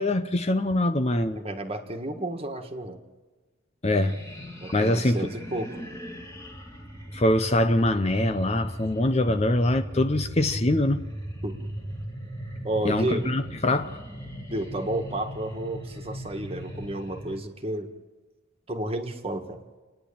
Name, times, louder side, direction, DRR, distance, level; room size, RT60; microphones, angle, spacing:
voice 1, 0.0-1.4 3.8-4.2 4.7-5.3 7.1-11.0 12.8-14.0, left 1 dB, 30° left, 0.7 m, -23 dB
voice 2, 1.4-3.0 4.6-5.7 11.4-11.6 12.6-13.3 14.5-17.9 18.7-19.6, right 1 dB, 30° right, 1.7 m, -31 dB
sound 1, 3.9-17.4, equal, 15° left, 2.3 m, -38 dB
29.5 x 10.0 x 8.6 m
head